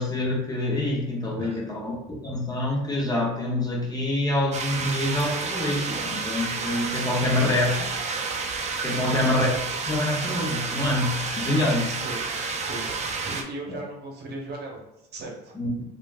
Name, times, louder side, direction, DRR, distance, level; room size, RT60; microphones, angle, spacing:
voice 1, 0.0-1.9 2.2-7.9 8.8-9.5 9.9-12.0 13.7-13.8 15.5-15.8, left 1 dB, 20° left, -1 dB, 0.8 m, -26 dB
sound 1, 4.5-13.4, right 4 dB, 35° right, 0.5 m, -30 dB
voice 2, 8.9-9.3 12.0-12.4 12.7-15.6, right 2 dB, 55° right, 0 dB, 0.9 m, -37 dB
3.2 x 2.4 x 2.4 m, 0.93 s
supercardioid pair, 80°, 21 cm